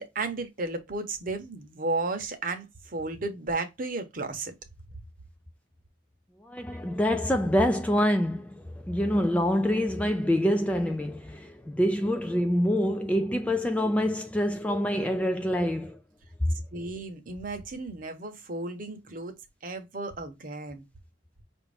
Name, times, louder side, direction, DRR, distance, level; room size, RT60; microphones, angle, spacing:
voice 1, 0.0-4.5 6.7-6.8 16.7-20.9, right 3 dB, 45° right, 0.9 m, -34 dB
voice 2, 6.4-16.0, equal, 5° left, 0.3 m, -26 dB
5.7 x 2.6 x 3.3 m
head